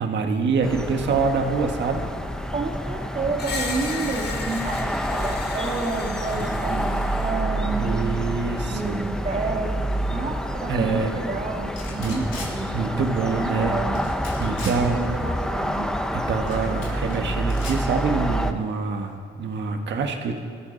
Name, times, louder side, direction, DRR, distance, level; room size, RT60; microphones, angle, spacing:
voice 1, 0.0-2.1 6.3-6.9 7.7-9.0 10.7-11.1 12.0-12.2 12.7-13.8 14.4-15.0 16.1-20.4, right 4 dB, 65° right, 4 dB, 1.7 m, -26 dB
sound 1, 0.6-18.5, equal, 5° left, 0.8 m, -28 dB
voice 2, 2.5-8.1 8.6-9.8 10.1-13.0 13.4-14.0 14.8-15.9, right 3 dB, 40° right, 1 dB, 2.0 m, -30 dB
Screech, 3.4-7.4, left 4 dB, 55° left, 1.7 m, -35 dB
sound 2, 11.8-12.5 13.9-14.8 16.5-17.2 17.5-17.8, left 4 dB, 75° left, 3.6 m, -38 dB
21.5 x 13.0 x 4.1 m, 2.1 s
cardioid pair, 125°, 20 cm